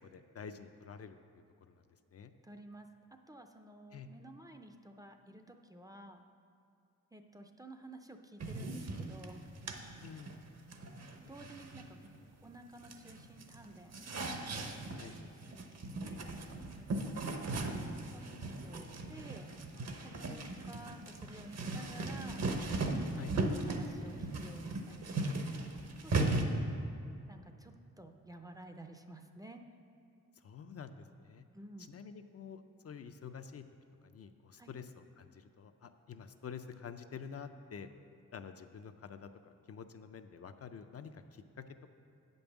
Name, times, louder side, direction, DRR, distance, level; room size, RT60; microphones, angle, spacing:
voice 1, 0.0-1.2 1.7-1.8 2.1-2.3 3.9-4.1 10.0-10.4 15.0-15.1 23.2-23.3 26.4-26.6 30.4-31.5 31.9-33.6 34.0-34.9 35.2-37.9 38.3-41.6, left 6 dB, 50° left, 8 dB, 0.5 m, -48 dB
voice 2, 2.4-6.2 7.1-9.4 11.1-12.0 12.4-15.9 16.2-17.2 17.9-19.5 20.0-22.4 23.2-25.4 26.0-26.5 27.3-29.6 31.5-31.9 34.6-34.7, right 1 dB, 10° right, 5 dB, 0.5 m, -53 dB
sound 1, 8.4-12.5 12.8-26.4, right 2 dB, 50° right, 0.9 m, -38 dB
8.4 x 5.3 x 7.0 m, 2.5 s
cardioid pair, 95°, 32 cm